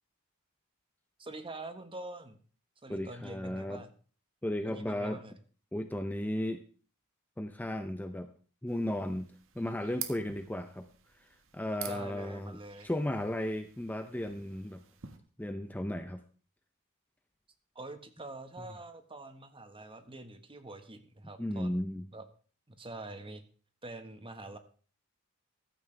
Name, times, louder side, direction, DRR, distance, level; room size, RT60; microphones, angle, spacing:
voice 1, 1.2-2.4 2.8-3.9 4.6-5.3 11.8-12.9 17.7-21.8 22.1-22.2 22.7-23.4 23.8-24.6, right 2 dB, 25° right, 8 dB, 1.4 m, -45 dB
voice 2, 2.9-3.8 4.4-5.2 5.7-6.6 7.4-8.3 8.6-9.3 9.6-10.9 11.5-12.6 12.8-14.8 15.4-16.2 21.4-22.0, left 1 dB, 10° left, 8 dB, 0.6 m, -35 dB
sound 1, 8.7-15.2, right 10 dB, 65° right, 1.6 m, -48 dB
14.5 x 13.0 x 3.4 m, 0.40 s
head